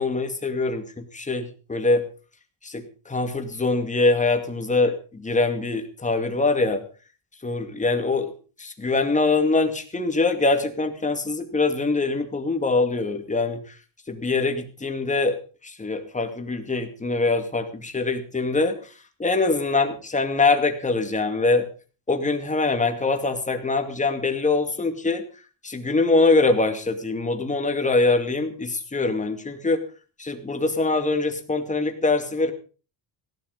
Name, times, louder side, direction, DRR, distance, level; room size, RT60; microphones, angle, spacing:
voice 1, 0.0-2.1 2.6-6.8 7.4-8.3 8.6-13.7 14.1-15.4 15.6-18.8 19.2-21.7 22.1-25.2 25.6-29.8 30.2-32.5, left 3 dB, 15° left, 6 dB, 2.4 m, -23 dB
17.0 x 12.0 x 5.2 m, 0.37 s
cardioid pair, 130°, 44 cm